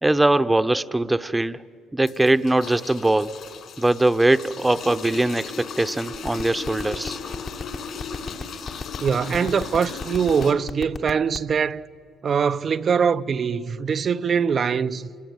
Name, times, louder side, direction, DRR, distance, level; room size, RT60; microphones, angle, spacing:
voice 1, 0.0-1.6 1.9-3.4 3.8-7.2, right 2 dB, 15° right, 0.9 m, -21 dB
sound 1, 2.1-10.5, left 5 dB, 60° left, 5.3 m, -36 dB
sound 2, 6.1-11.5, left 4 dB, 40° left, 1.5 m, -31 dB
voice 2, 9.0-11.9 12.2-15.1, right 6 dB, 45° right, 0.7 m, -22 dB
27.0 x 23.0 x 9.6 m
hypercardioid pair, 60°, 0 cm